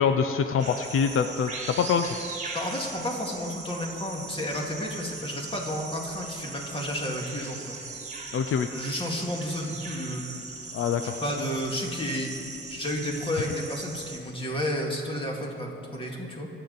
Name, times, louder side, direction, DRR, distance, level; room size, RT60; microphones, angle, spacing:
voice 1, 0.0-2.2 8.3-8.7 10.7-11.2, left 6 dB, 85° left, 8 dB, 0.6 m, -25 dB
sound 1, 0.6-14.2, right 3 dB, 35° right, 1.6 m, -39 dB
voice 2, 2.5-7.8 8.7-10.2 11.0-12.3 12.7-16.5, equal, 25° left, -1 dB, 2.2 m, -31 dB
24.0 x 8.2 x 4.1 m, 2.6 s
wide cardioid pair, 115°, 21 cm